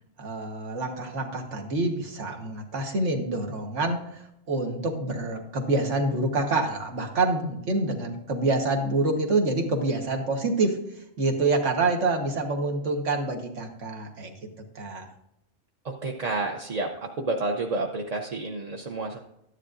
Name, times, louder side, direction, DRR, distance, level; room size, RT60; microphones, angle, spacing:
voice 1, 0.2-10.8 11.2-14.3 14.8-15.1, right 2 dB, 75° right, 3 dB, 1.7 m, -27 dB
voice 2, 15.8-16.9 17.2-19.2, right 3 dB, 40° right, 1 dB, 0.6 m, -29 dB
12.5 x 10.0 x 2.5 m, 0.80 s
omnidirectional pair, 1.3 m